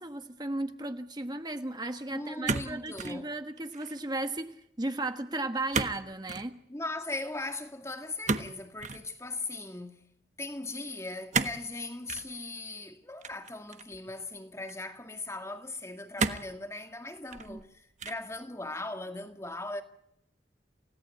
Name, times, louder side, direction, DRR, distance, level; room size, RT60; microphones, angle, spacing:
voice 1, 0.0-6.6 17.5-17.6, right 2 dB, 25° right, 1.2 m, -35 dB
voice 2, 2.1-3.3 6.7-10.1 10.4-19.8, left 2 dB, 15° left, 2.0 m, -39 dB
sound 1, 2.4-3.2 3.6-4.0 5.7-6.0 6.3-6.5 8.2-9.0 11.3-11.6 12.1-12.3 13.2-14.0 14.7-14.8 16.2-16.6 17.2-17.6 18.0-18.3, right 4 dB, 45° right, 1.2 m, -32 dB
29.5 x 17.5 x 8.5 m
head